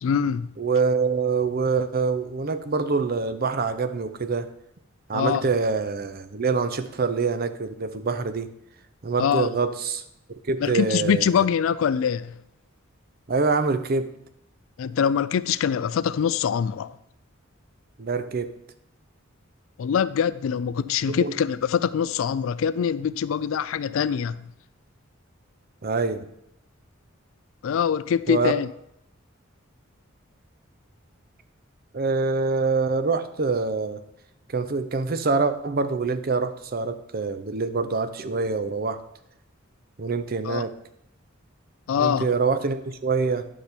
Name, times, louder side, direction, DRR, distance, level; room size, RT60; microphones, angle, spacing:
voice 1, 0.0-0.5 5.1-5.4 9.2-9.5 10.6-12.3 14.8-17.0 19.8-24.4 27.6-28.7 40.4-40.6 41.9-42.3, left 7 dB, 80° left, 0.3 m, -24 dB
voice 2, 0.6-4.5 5.1-8.5 9.0-10.0 10.4-11.5 13.3-14.1 18.0-18.5 21.1-21.4 25.8-26.3 28.3-28.5 31.9-34.0 34.5-39.0 40.0-40.7 42.0-43.4, right 4 dB, 45° right, 0.6 m, -25 dB
10.0 x 6.7 x 4.3 m
head